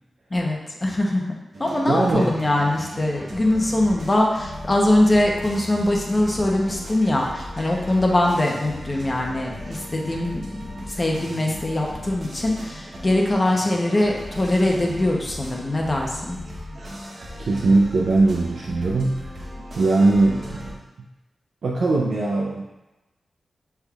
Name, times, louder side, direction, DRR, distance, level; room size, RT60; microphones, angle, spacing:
voice 1, 0.3-1.2 1.6-16.4, left 1 dB, 35° left, 0 dB, 0.9 m, -22 dB
sound 1, 1.5-20.7, equal, 55° right, 0.9 m, -37 dB
voice 2, 1.8-2.3 17.4-19.4 19.8-20.8 21.6-22.6, right 2 dB, 80° right, -4 dB, 0.5 m, -20 dB
6.2 x 3.5 x 2.4 m, 1.0 s
cardioid pair, 65°, 0 cm